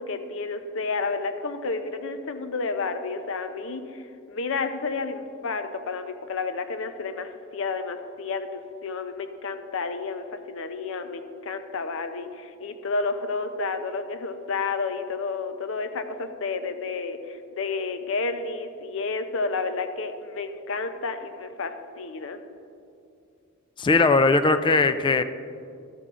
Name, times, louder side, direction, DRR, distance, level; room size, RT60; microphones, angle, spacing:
voice 1, 0.0-22.4, left 4 dB, 65° left, 9 dB, 0.6 m, -31 dB
voice 2, 23.8-25.2, left 3 dB, 20° left, 11 dB, 0.3 m, -19 dB
12.5 x 6.8 x 3.7 m, 2.4 s
head